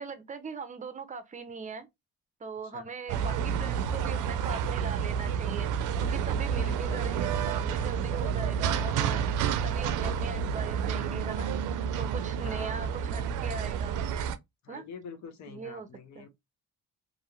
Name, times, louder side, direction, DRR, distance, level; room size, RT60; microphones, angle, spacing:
voice 1, 0.0-1.9 2.4-5.7 6.0-9.3 9.6-11.5 12.0-14.0 14.7-14.8 15.5-15.9 16.2-16.3, right 4 dB, 25° right, 0.6 m, -40 dB
sound 1, 3.1-14.4, right 7 dB, 80° right, 0.5 m, -30 dB
voice 2, 6.5-7.0 12.4-12.8 14.6-16.3, left 5 dB, 70° left, 0.9 m, -45 dB
2.9 x 2.6 x 2.4 m
cardioid pair, 90°, 30 cm